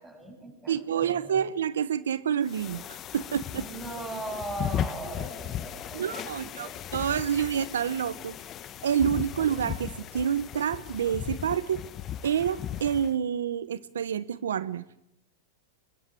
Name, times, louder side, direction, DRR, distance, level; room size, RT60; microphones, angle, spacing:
voice 1, 0.0-1.5 3.5-6.8, right 2 dB, 10° right, 4 dB, 7.6 m, -39 dB
voice 2, 0.7-3.6 5.9-8.4 8.8-11.8 12.2-14.8, right 8 dB, 90° right, 16 dB, 1.0 m, -28 dB
sound 1, 2.5-13.2, left 10 dB, 35° left, 1.2 m, -37 dB
24.5 x 22.5 x 7.7 m, 0.80 s
hypercardioid pair, 120°, 0 cm